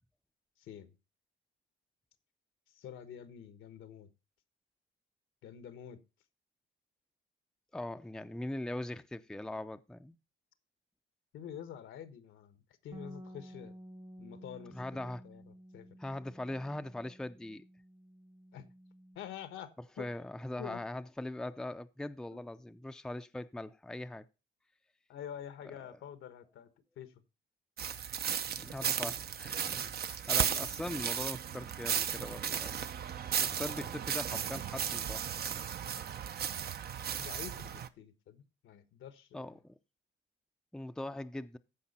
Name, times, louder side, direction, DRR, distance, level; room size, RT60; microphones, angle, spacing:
voice 1, 0.6-0.9 2.7-4.1 5.4-6.0 11.3-13.7 14.2-14.8 15.2-15.4 15.7-15.9 18.5-18.7 19.1-20.1 20.6-20.8 22.3-22.4 25.1-26.7 27.0-27.1 37.2-39.5, left 9 dB, 80° left, 1.2 m, -47 dB
voice 2, 7.7-10.2 14.7-15.2 16.0-17.7 20.0-24.3 25.9-26.0 28.5-32.7 33.1-35.6 39.3-39.8 40.7-41.6, left 1 dB, 5° left, 0.5 m, -41 dB
Bass guitar, 12.9-19.2, equal, 25° right, 1.0 m, -52 dB
sound 1, 27.8-37.9, right 8 dB, 50° right, 0.7 m, -35 dB
14.5 x 5.0 x 4.2 m
cardioid pair, 90°, 20 cm